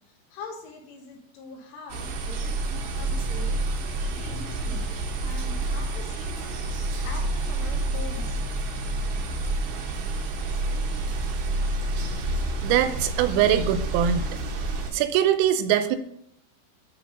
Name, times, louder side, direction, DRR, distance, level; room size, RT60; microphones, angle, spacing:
voice 1, 0.1-3.6 4.0-4.9 5.2-6.7 7.0-8.4, left 3 dB, 80° left, 2 dB, 3.8 m, -43 dB
sound 1, 1.9-14.9, right 2 dB, 70° right, 3.1 m, -29 dB
voice 2, 12.6-14.3 14.9-16.0, right 10 dB, 90° right, 10 dB, 3.3 m, -22 dB
10.5 x 3.8 x 5.4 m, 0.72 s
omnidirectional pair, 5.7 m